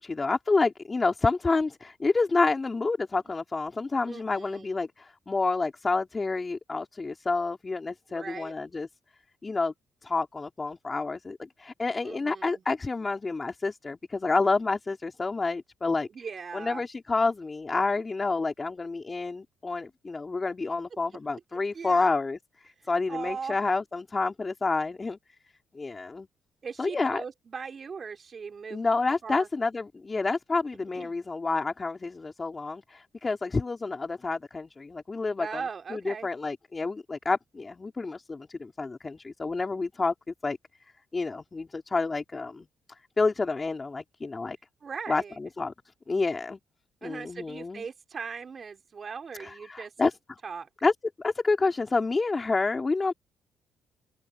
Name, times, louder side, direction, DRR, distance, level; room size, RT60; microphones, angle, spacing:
voice 1, 0.0-8.9 9.4-9.7 10.0-16.1 16.5-22.4 22.9-25.2 25.7-26.3 26.8-27.2 28.7-35.6 35.9-40.6 41.1-42.7 43.2-44.6 45.1-45.7 46.1-46.6 47.0-47.8 49.4-50.1 50.8-50.9 51.2-53.1, left 3 dB, 25° left, 3.6 m, -29 dB
voice 2, 4.0-4.7 8.1-8.5 12.0-12.6 16.1-16.8 21.7-22.1 23.1-23.6 26.6-28.9 29.2-29.5 30.9-31.2 35.4-36.3 44.8-45.4 47.0-49.9 50.4-50.7, right 5 dB, 45° right, 3.2 m, -39 dB
cardioid pair, 90°, 0 cm